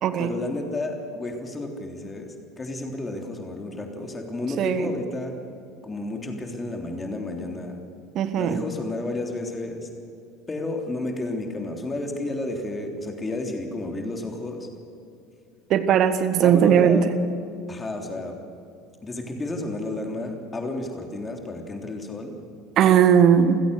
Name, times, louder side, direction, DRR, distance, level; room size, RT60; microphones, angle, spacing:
voice 1, 0.2-5.3 5.8-7.8 8.3-9.9 10.5-14.7 16.4-17.0 17.7-18.4 19.0-22.3, left 2 dB, 20° left, 3 dB, 3.4 m, -31 dB
voice 2, 4.6-4.9 8.1-8.6 15.7-17.1 22.8-23.6, right 8 dB, 45° right, 11 dB, 1.5 m, -18 dB
28.0 x 16.0 x 6.7 m, 2.6 s
figure-of-eight pair, 65°, 0 cm